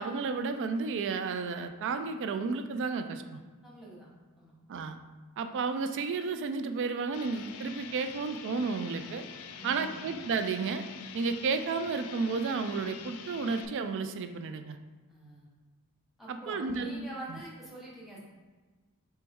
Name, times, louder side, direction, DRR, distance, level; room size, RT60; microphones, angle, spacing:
voice 1, 0.0-3.4 4.7-5.0 5.4-9.2 9.6-10.8 11.1-14.8 16.3-17.4, right 4 dB, 55° right, 8 dB, 0.3 m, -32 dB
voice 2, 3.6-4.1 4.4-4.5 9.5-10.1 15.1-15.5 16.2-18.2, right 1 dB, ahead, -6 dB, 1.0 m, -46 dB
sound 1, 7.1-13.7, left 7 dB, 85° left, 0.4 m, -46 dB
4.5 x 3.0 x 3.4 m, 1.3 s
head